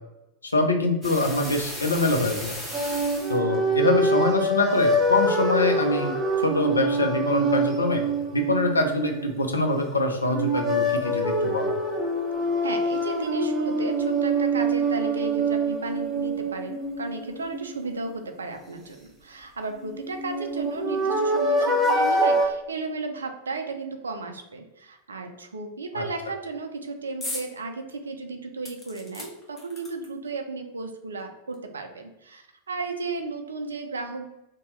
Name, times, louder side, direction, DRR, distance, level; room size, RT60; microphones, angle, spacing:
voice 1, 0.4-2.6 3.3-6.1 6.4-11.7 25.9-26.0, left 2 dB, 75° left, 3 dB, 0.4 m, -24 dB
sound 1, 1.0-3.4, equal, ahead, 1.4 m, -36 dB
sound 2, 2.7-9.8 10.3-18.1 19.8-22.5, right 1 dB, 15° right, 0.7 m, -25 dB
voice 2, 12.6-34.3, right 3 dB, 70° right, 5 dB, 0.4 m, -34 dB
sound 3, 27.2-27.5 27.9-28.0 28.6-30.3 31.2-31.3 31.5-31.6, left 2 dB, 20° left, 0.8 m, -38 dB
2.8 x 2.2 x 3.1 m, 0.92 s
figure-of-eight pair, 90°, 0 cm